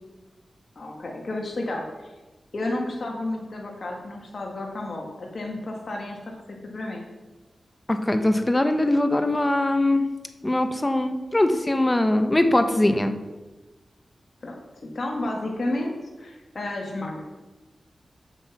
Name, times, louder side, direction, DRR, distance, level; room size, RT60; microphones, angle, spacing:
voice 1, 0.8-1.8 2.5-6.4 6.7-7.0 14.4-14.5 14.9-15.9 16.2-17.2, left 2 dB, 60° left, 0 dB, 1.8 m, -31 dB
voice 2, 7.9-10.0 10.4-13.1, left 1 dB, 25° left, 8 dB, 1.0 m, -21 dB
7.9 x 7.7 x 6.0 m, 1.2 s
cardioid pair, 45°, 0 cm